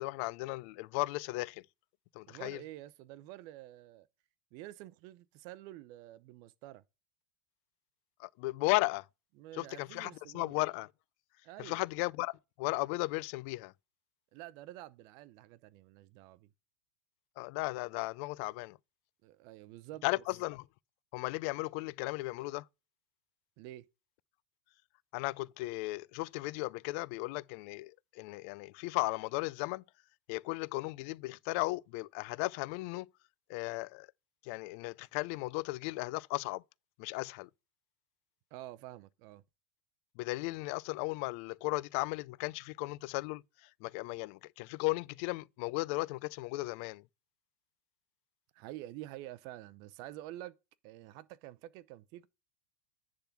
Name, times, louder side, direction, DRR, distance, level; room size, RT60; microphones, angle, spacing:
voice 1, 0.0-1.6 2.1-2.6 8.2-9.1 9.5-10.9 11.6-13.7 17.4-18.8 20.0-20.7 21.1-22.7 25.1-29.8 30.3-33.1 33.5-34.1 34.4-36.6 37.0-37.5 40.2-47.0, left 22 dB, 60° left, 0.4 m, -36 dB
voice 2, 2.3-4.1 4.5-6.8 9.4-10.6 11.4-11.8 14.3-16.5 19.2-20.2 23.6-23.9 38.5-39.4 48.5-50.6 50.8-52.3, right 15 dB, 50° right, 0.7 m, -48 dB
10.5 x 3.8 x 5.9 m
supercardioid pair, 140°, 8 cm